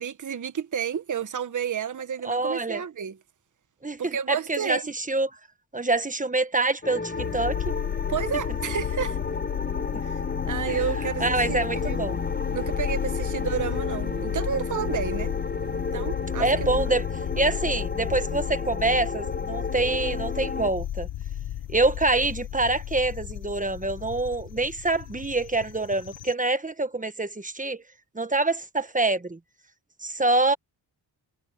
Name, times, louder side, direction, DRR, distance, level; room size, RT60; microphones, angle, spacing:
voice 1, 0.0-3.2 4.0-4.8 8.1-9.2 10.0-12.0 12.5-15.3 15.9-16.7, right 7 dB, 45° right, 1.0 m, -31 dB
voice 2, 2.2-2.8 3.8-5.3 5.7-7.7 10.7-10.8 11.2-12.2 16.4-17.1 17.4-21.1 21.7-27.8 28.1-29.4 30.0-30.5, right 2 dB, 20° right, 1.3 m, -26 dB
sound 1, 6.8-20.7, left 3 dB, 25° left, 3.7 m, -33 dB
sound 2, 7.1-26.3, left 11 dB, 75° left, 0.9 m, -33 dB
cardioid pair, 90°, 44 cm